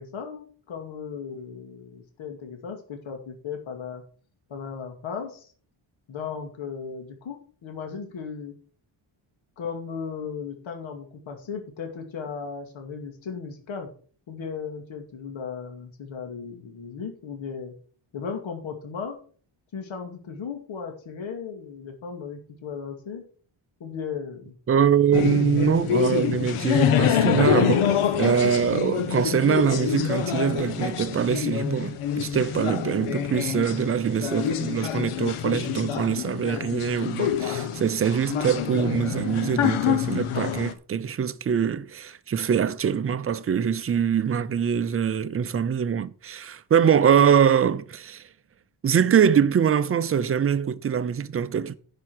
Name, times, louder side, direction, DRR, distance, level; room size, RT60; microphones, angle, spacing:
voice 1, 0.0-4.0 4.5-5.5 6.1-8.6 9.6-13.9 14.3-17.7 18.1-19.2 19.7-23.2 23.8-24.6 47.0-47.3, left 6 dB, 70° left, 2.4 m, -36 dB
voice 2, 24.7-48.3 48.8-51.8, right 8 dB, 30° right, 0.5 m, -23 dB
sound 1, 25.1-40.7, left 9 dB, 90° left, 1.2 m, -26 dB
10.5 x 5.8 x 6.3 m
wide cardioid pair, 165°, 49 cm